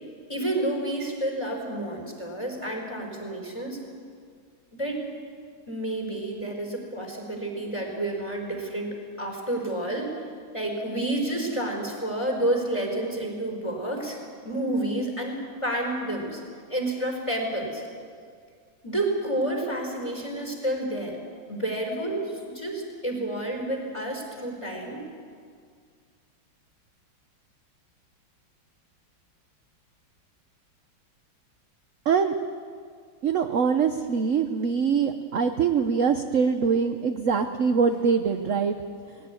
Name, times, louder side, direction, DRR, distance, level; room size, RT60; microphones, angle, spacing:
voice 1, 0.3-3.8 4.7-5.0 5.7-10.2 10.5-14.2 14.4-16.4 16.7-17.8 18.8-21.2 21.5-25.0, right 1 dB, 15° left, 0 dB, 4.6 m, -30 dB
voice 2, 33.2-38.7, right 6 dB, 55° right, 7 dB, 0.9 m, -23 dB
20.5 x 17.0 x 9.7 m, 2.1 s
omnidirectional pair, 2.2 m